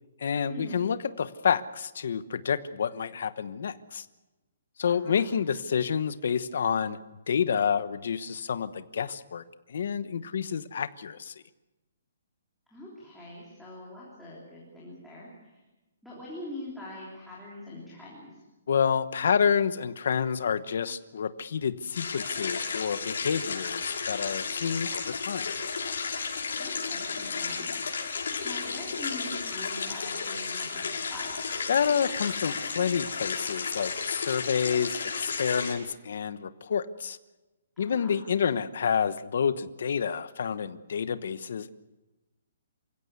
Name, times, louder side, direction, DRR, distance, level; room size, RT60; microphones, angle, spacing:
voice 1, 0.2-4.0 4.8-7.0 7.3-9.4 9.7-11.3 18.7-25.5 31.7-37.2 37.8-41.7, left 7 dB, 50° left, 14 dB, 1.1 m, -29 dB
voice 2, 4.9-5.4 12.7-15.6 16.0-18.4 26.6-27.8 28.4-31.4 37.8-38.3, left 1 dB, ahead, -8 dB, 3.4 m, -43 dB
sound 1, 21.9-35.7, left 5 dB, 65° left, 5.8 m, -33 dB
27.5 x 16.0 x 8.4 m, 1.1 s
hypercardioid pair, 180°, 0 cm